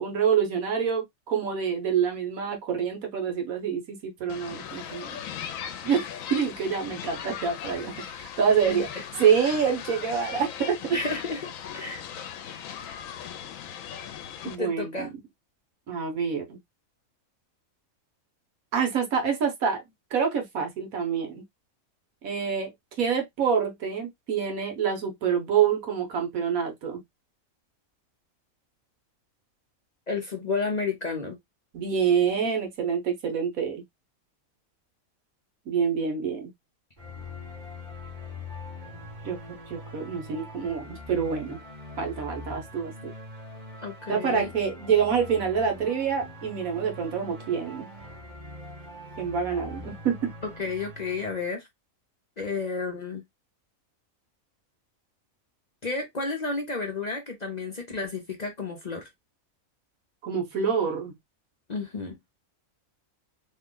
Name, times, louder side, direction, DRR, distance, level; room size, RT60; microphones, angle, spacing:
voice 1, 0.0-5.2 5.8-11.0 14.4-15.1 15.9-16.6 18.7-19.8 20.1-21.4 22.2-22.7 23.0-27.0 31.7-33.8 35.7-36.5 39.2-39.4 39.7-41.6 42.0-42.9 44.1-47.9 49.2-50.3 60.2-61.1, right 7 dB, 85° right, 1.5 m, -26 dB
sound 1, 4.3-14.6, left 9 dB, 75° left, 1.0 m, -38 dB
voice 2, 10.9-12.0 14.4-15.1 30.1-31.4 43.8-44.5 50.4-51.7 52.4-53.2 55.8-59.1 61.7-62.2, left 4 dB, 40° left, 0.7 m, -31 dB
sound 2, 37.0-51.5, left 2 dB, 35° right, 1.4 m, -42 dB
3.2 x 2.2 x 3.8 m
omnidirectional pair, 1.4 m